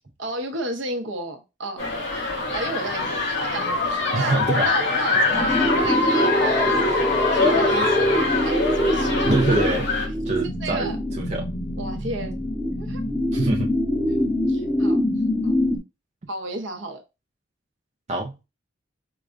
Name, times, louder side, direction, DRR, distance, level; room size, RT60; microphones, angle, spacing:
voice 1, 0.2-1.8 2.5-9.5 10.6-11.0 11.8-12.4 12.8-13.0 14.2-15.0 15.4-15.5 16.3-17.0, right 2 dB, 75° right, 0.9 m, -33 dB
sound 1, 1.8-10.1, left 3 dB, 80° left, 2.0 m, -24 dB
voice 2, 4.1-4.7 9.2-9.9 10.3-11.5 13.3-13.7 18.1-18.4, right 2 dB, 35° right, 0.5 m, -24 dB
sound 2, 5.3-15.8, equal, 10° left, 0.8 m, -24 dB
4.8 x 2.2 x 2.5 m
head